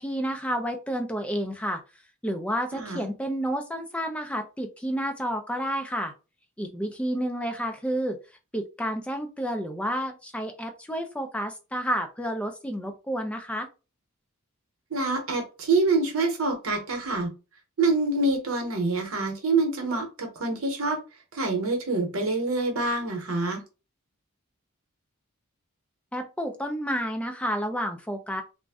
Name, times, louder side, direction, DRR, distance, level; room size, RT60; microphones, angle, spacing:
voice 1, 0.0-1.8 2.2-6.1 6.6-8.2 8.5-13.7 26.1-28.4, equal, 5° left, 5 dB, 0.4 m, -30 dB
voice 2, 2.7-3.1 14.9-17.3 17.8-21.0 21.3-23.6, right 3 dB, 70° right, 3 dB, 0.9 m, -26 dB
2.5 x 2.1 x 3.4 m, 0.31 s
head